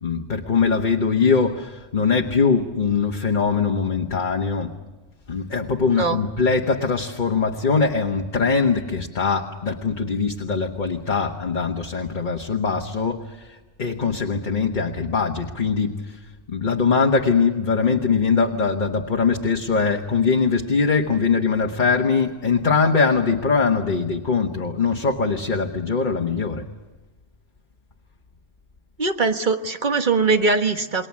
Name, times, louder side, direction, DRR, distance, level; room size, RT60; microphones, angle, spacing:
voice 1, 0.0-4.7 5.3-16.2 16.5-26.7, left 5 dB, 45° left, 2 dB, 1.3 m, -22 dB
voice 2, 29.0-31.1, right 4 dB, 45° right, 6 dB, 1.6 m, -21 dB
28.5 x 22.0 x 7.3 m, 1.2 s
omnidirectional pair, 1.2 m